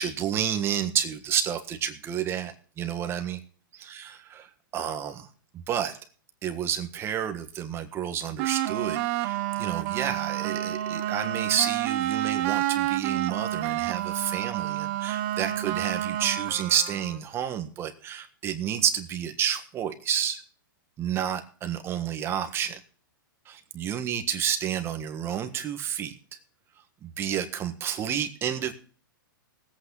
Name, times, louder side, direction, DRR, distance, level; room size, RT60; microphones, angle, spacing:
voice 1, 0.0-3.4 3.8-4.5 4.7-5.3 5.7-6.0 6.4-20.4 21.0-22.8 23.5-26.1 27.0-28.7, right 9 dB, 20° right, 8 dB, 1.5 m, -30 dB
sound 1, 8.4-17.2, right 13 dB, 40° right, 0.9 m, -29 dB
19.0 x 8.5 x 4.0 m, 0.43 s
hypercardioid pair, 150°, 11 cm